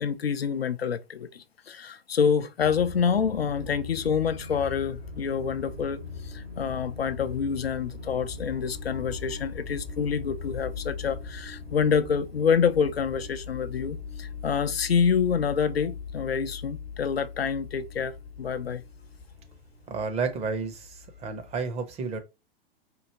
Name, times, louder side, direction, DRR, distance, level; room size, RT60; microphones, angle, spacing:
voice 1, 0.0-18.8, left 6 dB, 80° left, 0.5 m, -27 dB
sound 1, 2.6-21.6, left 4 dB, 70° right, 2.2 m, -40 dB
voice 2, 19.9-22.2, right 4 dB, 20° right, 0.7 m, -31 dB
4.6 x 2.7 x 2.7 m
figure-of-eight pair, 100°, 30 cm